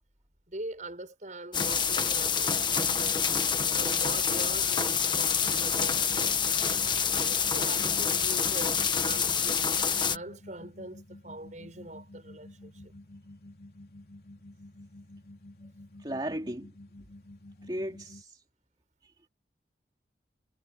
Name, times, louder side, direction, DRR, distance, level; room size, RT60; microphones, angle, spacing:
voice 1, 0.5-3.3 3.7-6.6 7.2-13.0, right 1 dB, 45° right, 7.0 m, -43 dB
sound 1, 1.5-10.2, left 6 dB, 25° left, 1.6 m, -27 dB
sound 2, 5.3-18.2, left 1 dB, 60° left, 3.4 m, -50 dB
voice 2, 16.0-16.7 17.7-18.4 19.0-19.1, right 1 dB, 25° right, 3.1 m, -35 dB
head